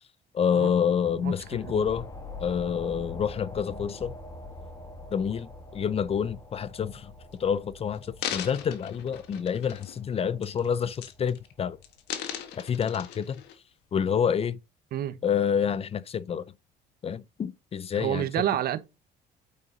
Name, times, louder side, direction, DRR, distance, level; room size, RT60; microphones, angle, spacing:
voice 1, 0.3-2.1 2.4-4.2 5.1-7.1 7.4-11.8 12.6-13.4 13.9-14.6 15.2-16.4 17.0-18.3, left 7 dB, 35° left, 0.5 m, -28 dB
sound 1, 0.7-11.8, left 2 dB, 20° left, 1.7 m, -45 dB
voice 2, 1.2-1.8 14.9-15.2 17.9-18.8, right 11 dB, 65° right, 1.1 m, -29 dB
sound 2, 7.2-7.3 7.9-10.1 10.4-10.7 11.0-11.5 11.8-13.5 14.1-14.2, left 10 dB, 85° left, 1.5 m, -38 dB
8.5 x 5.2 x 3.9 m
cardioid pair, 110°, 17 cm